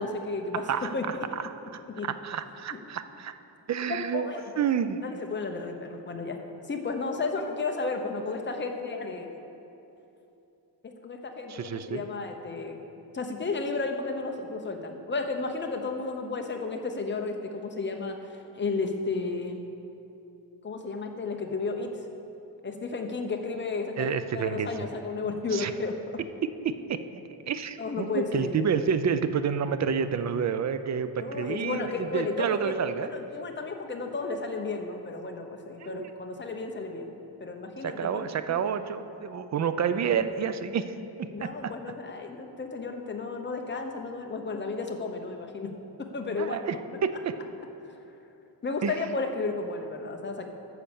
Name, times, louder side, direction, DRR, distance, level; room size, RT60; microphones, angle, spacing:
voice 1, 0.0-1.1 1.9-2.1 4.1-4.4 5.0-6.4 6.7-9.3 10.8-12.8 13.1-18.2 18.5-19.6 20.6-21.9 22.6-26.0 27.8-28.6 31.2-32.7 33.0-37.1 37.4-38.7 41.3-45.7 46.0-46.6 46.9-47.0 47.8-48.0 48.6-50.5, left 3 dB, 25° left, 3 dB, 0.9 m, -33 dB
voice 2, 0.5-3.3 3.7-4.2 4.6-5.0 11.5-12.0 24.0-24.8 25.5-25.7 26.6-27.0 27.5-33.1 35.8-36.1 37.8-41.7 46.3-47.4 48.8-49.0, right 7 dB, 40° right, 11 dB, 0.5 m, -29 dB
10.0 x 6.5 x 7.1 m, 2.9 s
wide cardioid pair, 150°, 44 cm